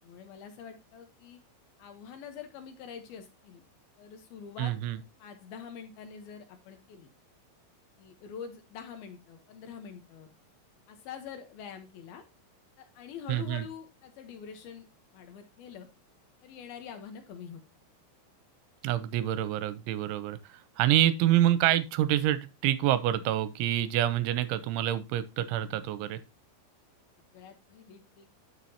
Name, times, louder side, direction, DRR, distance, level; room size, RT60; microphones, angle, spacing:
voice 1, 0.0-1.4 1.8-3.6 4.0-7.1 8.0-10.3 10.9-12.2 12.8-14.9 15.1-15.9 16.4-17.6 27.3-28.3, left 7 dB, 70° left, 2.3 m, -45 dB
voice 2, 4.6-5.0 13.3-13.6 18.8-20.4 20.8-26.2, right 12 dB, 85° right, 3.0 m, -27 dB
10.5 x 7.3 x 2.8 m
omnidirectional pair, 5.7 m